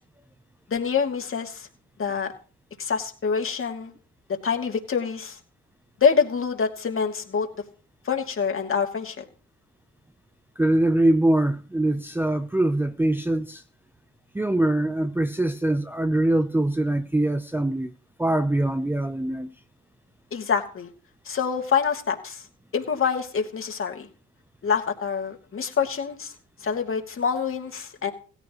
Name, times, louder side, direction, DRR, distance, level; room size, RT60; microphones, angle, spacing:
voice 1, 0.7-1.7 2.0-2.3 2.8-3.9 4.4-5.4 6.0-7.5 8.0-9.2 20.3-20.9 21.2-22.4 22.7-24.1 24.6-26.3 26.6-28.1, left 6 dB, 45° left, 2.5 m, -26 dB
voice 2, 10.6-13.6 14.3-17.9 18.2-19.5, right 1 dB, 5° right, 0.6 m, -23 dB
16.5 x 14.5 x 3.1 m
cardioid pair, 90°, 30 cm